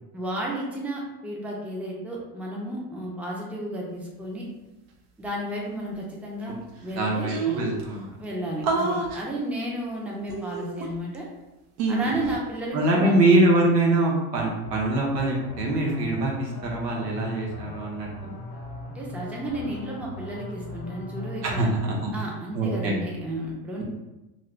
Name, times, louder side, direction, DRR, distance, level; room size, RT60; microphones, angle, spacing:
voice 1, 0.1-4.5 5.2-6.6 6.8-7.3 8.2-11.3 11.9-13.2 18.9-21.7 22.1-23.8, right 1 dB, 5° right, -3 dB, 0.6 m, -33 dB
sound 1, 6.6-6.7 6.9-7.0 7.3-7.8 8.6-9.2 10.3-11.2 11.8-12.4, right 3 dB, 65° right, 0.7 m, -27 dB
voice 2, 7.0-8.2 12.7-18.3 21.4-22.3 22.5-22.9, right 2 dB, 85° right, -2 dB, 1.0 m, -23 dB
sound 2, 14.6-21.7, left 2 dB, 55° left, 0.9 m, -39 dB
2.6 x 2.6 x 3.2 m, 1.0 s
hypercardioid pair, 90°, 48 cm